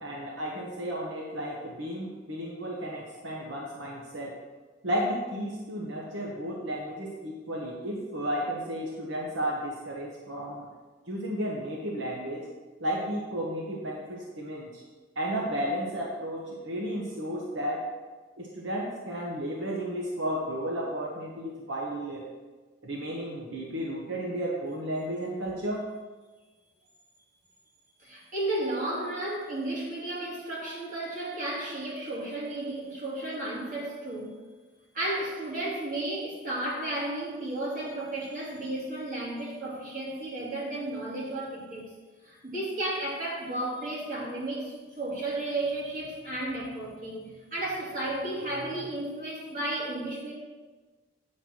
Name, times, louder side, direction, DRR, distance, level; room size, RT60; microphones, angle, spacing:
voice 1, 0.0-4.4 4.8-10.7 11.1-12.5 12.8-14.8 15.2-17.9 18.4-22.3 22.8-25.9, equal, 80° right, -2 dB, 1.2 m, -33 dB
voice 2, 28.0-34.3 34.9-41.9 42.2-50.3, right 1 dB, 45° right, -6 dB, 2.7 m, -33 dB
9.0 x 4.3 x 6.2 m, 1.3 s
head